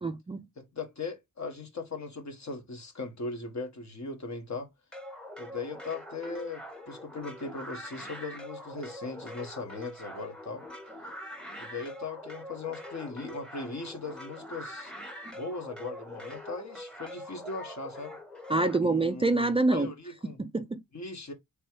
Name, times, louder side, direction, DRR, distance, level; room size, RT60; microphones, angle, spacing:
voice 1, 0.0-0.5 18.5-19.9 20.2-20.8, right 2 dB, 15° right, 0.3 m, -26 dB
voice 2, 0.6-4.7 5.4-10.6 11.6-14.9 15.3-18.2 18.8-20.4 20.9-21.3, left 3 dB, 55° left, 1.3 m, -39 dB
sound 1, 4.9-18.8, left 1 dB, ahead, 1.0 m, -44 dB
3.5 x 3.0 x 4.5 m
wide cardioid pair, 80°, 34 cm